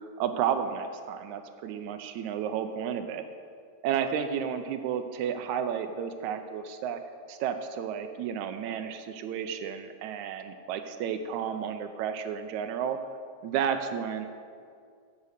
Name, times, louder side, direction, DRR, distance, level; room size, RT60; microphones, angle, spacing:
voice 1, 0.0-3.2 3.8-7.0 7.3-13.0 13.4-14.3, right 8 dB, 80° right, 8 dB, 2.0 m, -32 dB
9.6 x 8.3 x 6.6 m, 2.2 s
omnidirectional pair, 3.4 m